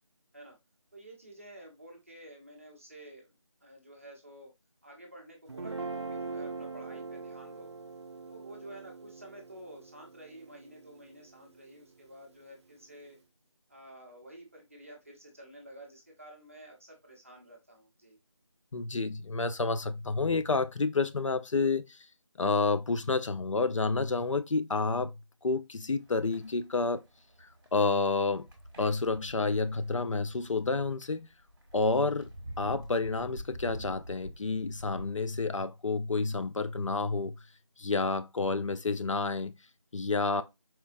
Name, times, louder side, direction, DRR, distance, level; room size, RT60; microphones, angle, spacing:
voice 1, 0.9-3.3 3.6-4.5 4.8-7.7 8.3-13.2 13.7-18.2, right 1 dB, 25° right, 0.7 m, -51 dB
Guitar, 5.5-11.8, right 4 dB, 55° right, 0.4 m, -42 dB
voice 2, 18.7-22.0 22.4-25.1 25.4-27.0 27.4-28.5 28.8-31.3 31.7-32.3 32.6-37.3 37.8-39.6 39.9-40.4, left 3 dB, 70° left, 0.4 m, -29 dB
sound 1, 26.0-35.1, equal, 40° right, 1.1 m, -48 dB
4.3 x 2.0 x 2.5 m
figure-of-eight pair, 170°, 17 cm